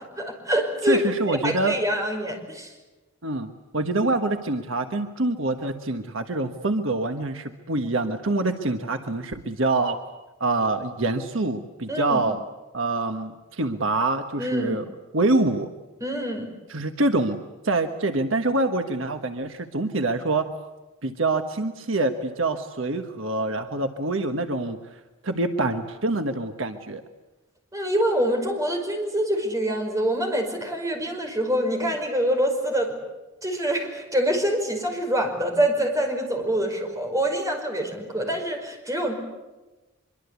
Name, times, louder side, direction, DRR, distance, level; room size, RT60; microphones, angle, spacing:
voice 1, 0.2-2.7 11.9-12.2 14.4-14.8 16.0-16.5 27.7-32.9 33.4-39.2, equal, 15° right, 3 dB, 5.3 m, -25 dB
voice 2, 0.8-1.8 3.2-10.0 10.4-12.4 12.7-14.8 15.1-15.7 16.7-20.5 21.0-24.8 25.2-27.0, right 2 dB, 65° right, 6 dB, 1.4 m, -25 dB
24.5 x 24.0 x 8.4 m, 1.1 s
head